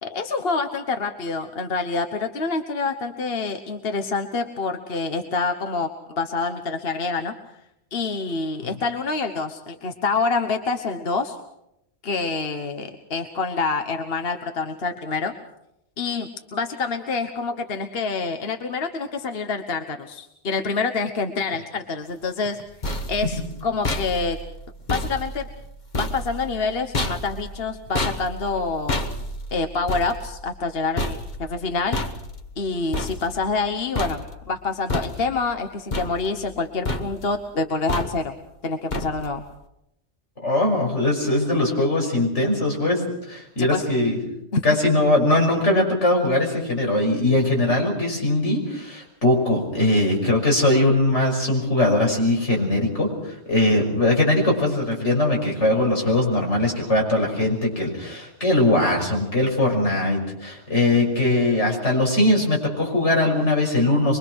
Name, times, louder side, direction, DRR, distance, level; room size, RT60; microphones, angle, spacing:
voice 1, 0.0-7.3 7.9-11.4 12.0-15.3 16.0-22.6 23.1-24.4 24.9-25.5 25.9-29.0 29.5-32.0 32.6-38.4 38.6-39.4 43.6-43.9 44.5-44.8, left 4 dB, 55° left, 7 dB, 1.4 m, -27 dB
sound 1, 22.5-33.7 33.9-34.6 34.9-35.5 35.9-36.6 36.8-37.4 37.9-38.4 38.9-39.4, left 2 dB, 40° left, 1.5 m, -30 dB
voice 2, 40.4-44.2 44.6-64.2, left 1 dB, 90° left, 0 dB, 6.2 m, -21 dB
24.5 x 22.5 x 6.2 m, 0.81 s
omnidirectional pair, 1.2 m